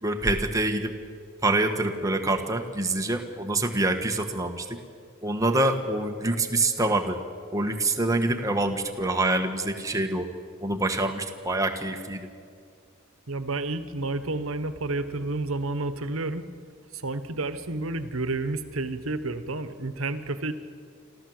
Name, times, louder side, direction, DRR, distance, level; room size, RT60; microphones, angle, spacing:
voice 1, 0.0-0.9 1.4-4.8 5.2-7.2 7.5-10.3 10.6-12.3, right 2 dB, 15° right, 5 dB, 1.4 m, -26 dB
voice 2, 13.3-16.5 16.9-20.5, right 2 dB, 80° right, 11 dB, 1.2 m, -30 dB
27.0 x 14.0 x 7.9 m, 2.2 s
head